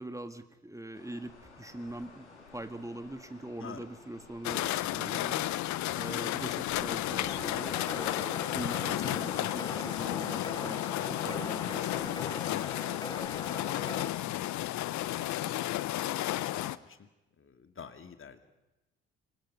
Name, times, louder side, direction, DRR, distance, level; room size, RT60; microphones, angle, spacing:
voice 1, 0.0-2.3 2.5-5.4 5.9-12.2, right 1 dB, 10° right, 8 dB, 2.1 m, -42 dB
sound 1, 0.9-14.1, left 3 dB, 90° left, 2.8 m, -54 dB
sound 2, 4.4-16.8, left 15 dB, 60° left, 0.9 m, -33 dB
sound 3, 7.2-14.1, left 2 dB, 10° left, 1.1 m, -41 dB
voice 2, 10.9-11.3 12.2-17.1 17.4-18.4, left 6 dB, 40° left, 8 dB, 2.4 m, -49 dB
27.5 x 23.5 x 5.6 m, 1.0 s
figure-of-eight pair, 45°, 33 cm